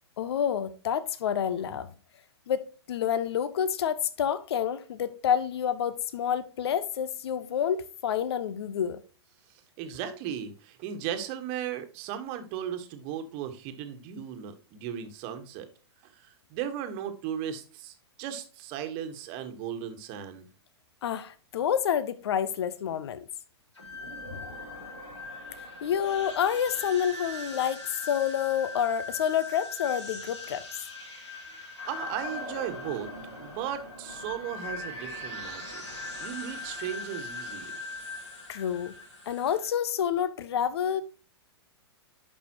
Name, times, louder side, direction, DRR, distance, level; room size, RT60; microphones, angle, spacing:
voice 1, 0.2-1.9 2.5-9.0 21.0-23.2 24.3-24.4 25.5-30.7 38.5-38.9 39.3-41.0, left 9 dB, 65° left, 0.6 m, -28 dB
voice 2, 9.8-15.7 16.0-20.5 31.9-33.1 33.4-35.8 36.2-37.7, right 9 dB, 40° right, 1.3 m, -36 dB
sound 1, 23.7-39.7, left 2 dB, 85° left, 3.2 m, -40 dB
11.0 x 5.4 x 2.9 m
hypercardioid pair, 115°, 14 cm